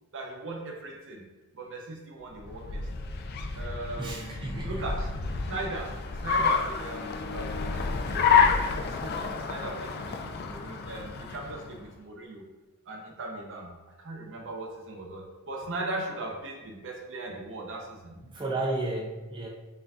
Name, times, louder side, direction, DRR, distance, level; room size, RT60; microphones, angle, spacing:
voice 1, 0.1-1.2 1.5-2.9 3.5-12.4 12.9-18.2, right 2 dB, 60° right, 1 dB, 0.7 m, -39 dB
Car, 2.3-11.9, left 5 dB, 45° left, 0.3 m, -29 dB
voice 2, 4.0-4.8 18.3-19.5, right 2 dB, 20° right, -3 dB, 0.4 m, -32 dB
5.6 x 2.6 x 2.3 m, 1.2 s
head